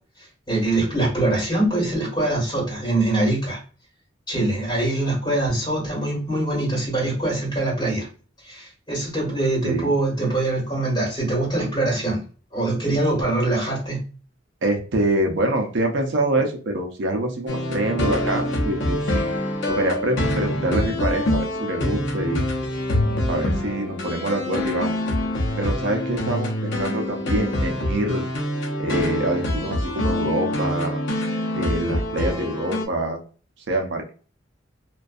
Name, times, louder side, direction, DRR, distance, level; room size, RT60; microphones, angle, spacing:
voice 1, 0.2-3.6 4.3-8.1 8.4-12.2 12.5-14.0, right 2 dB, 20° left, -4 dB, 1.5 m, -23 dB
voice 2, 14.6-19.3 19.7-22.5 23.3-24.9 25.6-28.2 28.8-31.0 31.6-33.2 33.7-34.1, right 1 dB, 65° right, 3 dB, 0.5 m, -25 dB
sound 1, 17.5-32.9, left 1 dB, 65° left, 0.6 m, -25 dB
2.5 x 2.2 x 2.3 m, 0.39 s
head